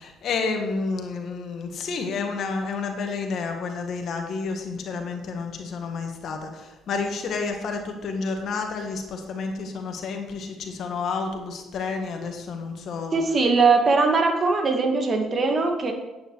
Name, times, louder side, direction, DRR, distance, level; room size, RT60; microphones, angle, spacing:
voice 1, 0.0-6.5 6.9-13.2, left 4 dB, 65° left, 4 dB, 1.9 m, -30 dB
voice 2, 13.1-15.9, right 4 dB, 45° right, 4 dB, 2.0 m, -21 dB
10.5 x 8.6 x 4.8 m, 1.1 s
hypercardioid pair, 55°, 0 cm